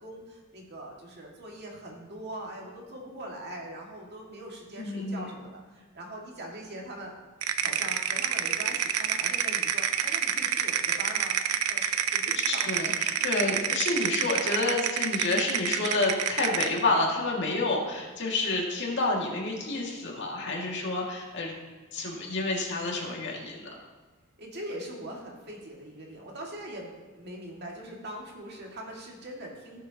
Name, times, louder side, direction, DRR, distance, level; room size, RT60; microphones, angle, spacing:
voice 1, 0.0-7.1 7.6-11.4 11.7-12.7 24.4-29.8, right 1 dB, 50° right, -1 dB, 2.1 m, -42 dB
voice 2, 4.8-5.3 12.4-21.5 21.9-23.8, left 2 dB, 55° left, -2 dB, 2.2 m, -29 dB
sound 1, 7.4-16.8, right 9 dB, 85° right, 0.6 m, -28 dB
17.5 x 7.2 x 2.9 m, 1.4 s
head